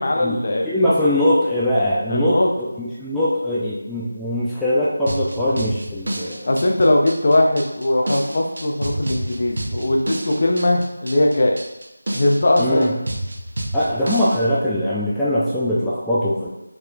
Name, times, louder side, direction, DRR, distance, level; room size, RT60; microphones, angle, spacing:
voice 1, 0.0-0.9 2.1-2.5 6.4-11.6 12.1-12.9, left 1 dB, 45° left, 1 dB, 0.7 m, -19 dB
voice 2, 0.6-6.4 12.6-12.9 13.7-16.5, left 1 dB, 5° left, -11 dB, 0.4 m, -21 dB
sound 1, 5.1-14.4, right 1 dB, 50° right, 0.8 m, -29 dB
5.2 x 3.7 x 2.5 m, 0.96 s
figure-of-eight pair, 165°, 0 cm